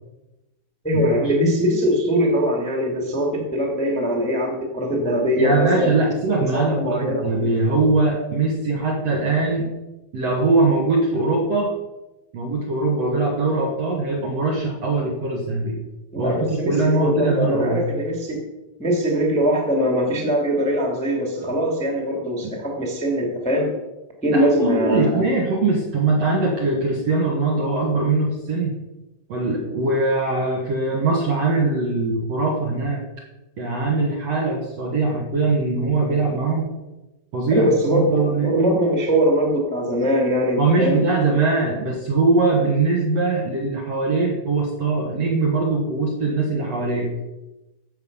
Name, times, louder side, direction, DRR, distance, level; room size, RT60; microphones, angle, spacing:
voice 1, 0.8-5.9 6.5-7.5 16.1-18.4 18.8-23.7 24.2-25.3 37.5-41.0, equal, ahead, 0 dB, 1.7 m, -21 dB
voice 2, 5.4-9.7 10.1-11.7 12.3-15.8 16.2-17.8 22.4-22.6 24.3-28.8 29.3-33.0 33.6-36.7 37.3-38.5 40.6-47.1, right 3 dB, 50° right, -1 dB, 2.2 m, -21 dB
13.5 x 8.2 x 5.5 m, 1.0 s
omnidirectional pair, 4.7 m